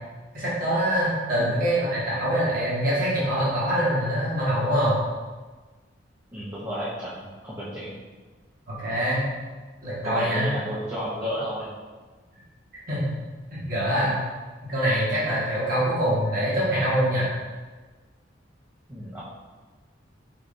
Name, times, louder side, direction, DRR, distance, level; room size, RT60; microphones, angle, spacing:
voice 1, 0.3-5.0 8.7-9.2 9.8-10.5 12.9-13.0 13.5-14.2 14.7-17.3, equal, 50° right, -10 dB, 1.3 m, -24 dB
voice 2, 6.3-7.9 10.0-11.7 18.9-19.2, equal, 15° right, -9 dB, 0.6 m, -32 dB
5.0 x 3.1 x 2.5 m, 1.3 s
head